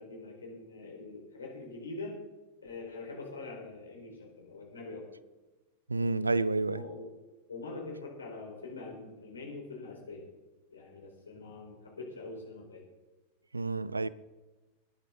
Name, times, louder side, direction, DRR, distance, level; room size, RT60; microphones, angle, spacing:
voice 1, 0.0-2.2 2.6-5.0 6.6-7.1 7.5-10.3 10.7-12.8, left 3 dB, 70° left, 4.3 m, -44 dB
voice 2, 5.9-6.8 13.5-14.1, right 3 dB, 80° right, 0.4 m, -29 dB
19.5 x 10.5 x 3.9 m
figure-of-eight pair, 90°, 0 cm